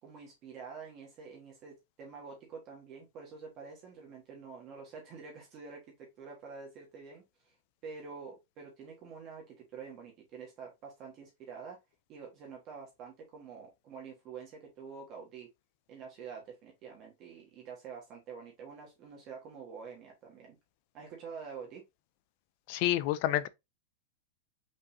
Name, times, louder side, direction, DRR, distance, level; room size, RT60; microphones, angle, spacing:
voice 1, 0.0-7.5 7.8-11.8 12.1-15.5 15.9-20.6 20.9-21.8, right 5 dB, 30° right, 1.4 m, -47 dB
voice 2, 22.7-23.5, left 14 dB, 40° left, 0.5 m, -28 dB
5.2 x 3.7 x 2.7 m
supercardioid pair, 165°, 0 cm